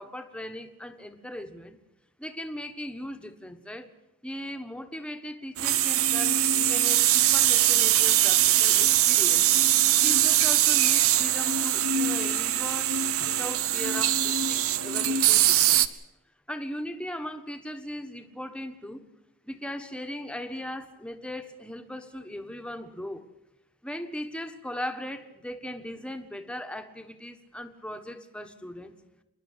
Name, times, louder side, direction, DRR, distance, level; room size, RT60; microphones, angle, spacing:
voice 1, 0.0-1.8 2.2-3.9 4.2-9.5 10.0-12.9 13.2-15.8 16.5-19.0 19.4-23.2 23.8-29.0, equal, 5° left, 7 dB, 1.4 m, -38 dB
sound 1, 5.6-15.9, right 11 dB, 70° right, 0.9 m, -22 dB
27.5 x 11.5 x 9.8 m, 0.93 s
head